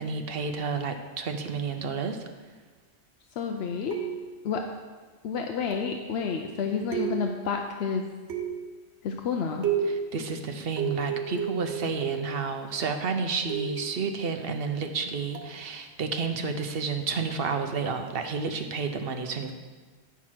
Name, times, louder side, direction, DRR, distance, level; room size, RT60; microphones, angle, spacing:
voice 1, 0.0-2.2 9.9-19.5, right 5 dB, 60° right, 7 dB, 0.9 m, -31 dB
voice 2, 3.4-4.0 4.4-4.6 5.2-8.1 9.0-9.7, left 6 dB, 75° left, 3 dB, 0.8 m, -30 dB
sound 1, 3.9-4.5 5.7-6.1 6.9-7.5 8.3-8.8 9.6-10.1 10.8-12.4 13.5-13.9 15.3-15.6, right 7 dB, 85° right, 1.3 m, -31 dB
9.6 x 4.6 x 5.8 m, 1.4 s
omnidirectional pair, 1.1 m